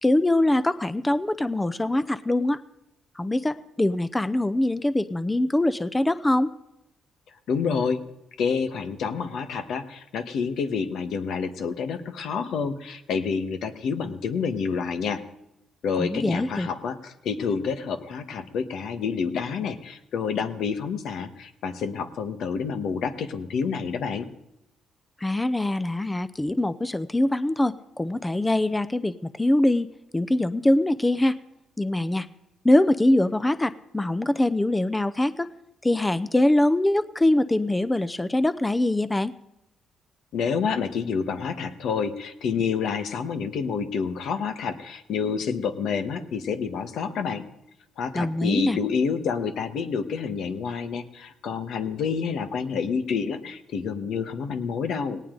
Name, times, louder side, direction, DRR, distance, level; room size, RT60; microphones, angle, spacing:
voice 1, 0.0-2.6 3.2-6.5 16.0-16.7 25.2-29.9 30.1-31.4 31.8-32.3 32.6-35.5 35.8-39.3 48.1-48.8, left 1 dB, 15° left, 13 dB, 0.6 m, -23 dB
voice 2, 7.5-8.0 8.4-15.2 15.8-24.3 40.3-47.5 48.0-55.2, left 6 dB, 75° left, 9 dB, 1.3 m, -28 dB
18.5 x 18.0 x 3.9 m, 0.83 s
cardioid pair, 90°, 0 cm